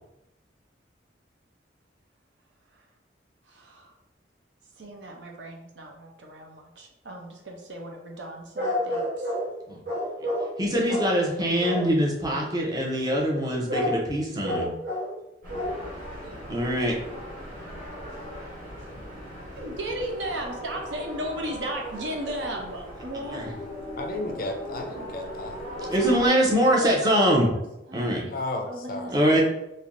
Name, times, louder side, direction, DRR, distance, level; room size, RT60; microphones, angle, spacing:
voice 1, 3.5-3.9 4.8-9.3 19.6-23.6 26.8-27.6 27.9-28.3 28.7-29.4, right 1 dB, 85° right, 1 dB, 0.7 m, -36 dB
sound 1, 8.6-9.5 9.9-10.5 10.9-11.2 11.6-11.9 13.7-14.0 14.4-15.2 15.5-15.8 16.3-16.4, left 1 dB, 65° right, 1.2 m, -29 dB
voice 2, 10.6-14.7 16.5-17.0 23.3-23.5 25.9-27.5 27.9-28.3 29.1-29.4, equal, 20° right, -2 dB, 0.6 m, -23 dB
sound 2, 15.4-26.3, equal, 50° right, 1.4 m, -39 dB
voice 3, 24.0-25.9 28.3-29.1, left 2 dB, 50° left, 4 dB, 0.4 m, -34 dB
3.2 x 2.6 x 2.5 m, 0.87 s
head